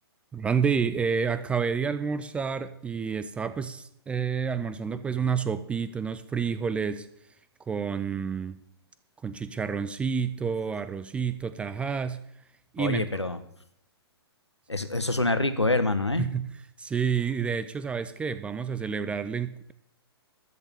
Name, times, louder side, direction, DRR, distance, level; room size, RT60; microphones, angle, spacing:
voice 1, 0.3-7.1 7.7-8.6 9.2-12.2 12.7-13.2 16.2-16.5 16.8-19.7, right 6 dB, 10° right, 13 dB, 0.4 m, -29 dB
voice 2, 12.8-13.4 14.7-16.3, left 2 dB, 85° left, 10 dB, 1.3 m, -26 dB
13.5 x 6.9 x 8.4 m, 0.73 s
figure-of-eight pair, 120°, 14 cm